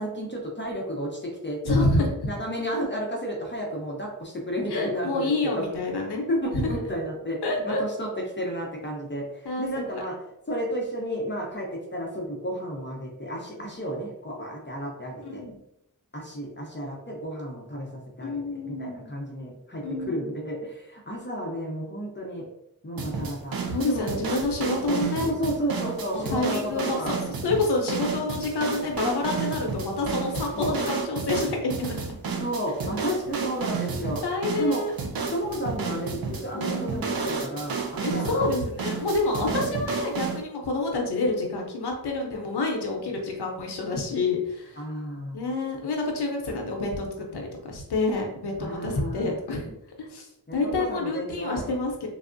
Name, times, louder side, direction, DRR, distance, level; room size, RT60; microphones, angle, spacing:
voice 1, 0.0-1.9 2.2-5.7 6.3-10.2 10.5-15.4 16.1-22.4 22.8-23.6 23.8-24.1 24.9-27.2 30.5-30.8 32.4-34.2 34.6-34.8 35.3-38.4 39.4-39.7 44.8-45.4 48.6-49.4 50.5-51.7, equal, 30° left, -1 dB, 0.7 m, -32 dB
voice 2, 1.6-2.1 4.7-6.2 6.5-6.7 7.4-7.8 9.4-9.9 13.5-13.7 15.2-15.6 18.2-19.1 19.8-20.3 23.7-25.4 26.1-27.1 27.4-32.0 32.3-32.4 34.2-34.9 36.5-37.1 38.0-44.8 45.3-49.7 50.0-52.1, left 2 dB, 80° left, 1 dB, 0.7 m, -28 dB
sound 1, 23.0-40.4, right 5 dB, 65° right, 0.5 m, -32 dB
3.3 x 2.0 x 2.5 m, 0.82 s
cardioid pair, 45°, 39 cm